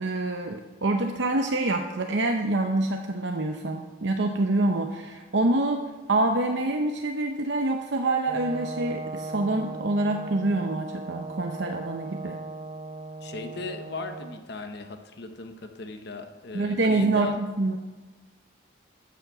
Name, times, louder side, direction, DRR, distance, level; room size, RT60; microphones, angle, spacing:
voice 1, 0.0-12.4 16.5-17.8, right 2 dB, 60° right, 4 dB, 0.8 m, -26 dB
Brass instrument, 8.3-14.4, right 3 dB, 25° right, 0.6 m, -38 dB
voice 2, 13.2-17.4, left 3 dB, 55° left, 7 dB, 0.9 m, -37 dB
13.0 x 7.4 x 6.8 m, 1.3 s
head